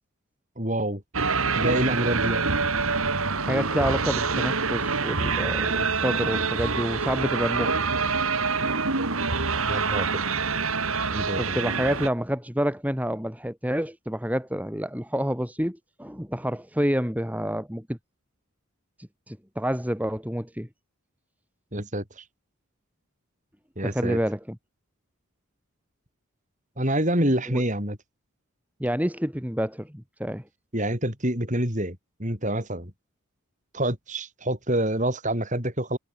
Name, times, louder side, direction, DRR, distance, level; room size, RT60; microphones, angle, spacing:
voice 1, 0.6-1.0 1.6-2.4 9.7-10.2 11.1-11.6 21.7-22.2 23.8-24.2 26.8-28.0 30.7-32.9 33.7-36.0, right 1 dB, 35° right, 7.5 m, -27 dB
sound 1, 1.1-12.1, right 4 dB, 75° right, 2.7 m, -26 dB
voice 2, 3.4-7.9 10.9-11.0 11.4-18.0 19.0-20.7 23.8-24.6 27.5-27.6 28.8-30.4, equal, 5° right, 6.2 m, -28 dB
head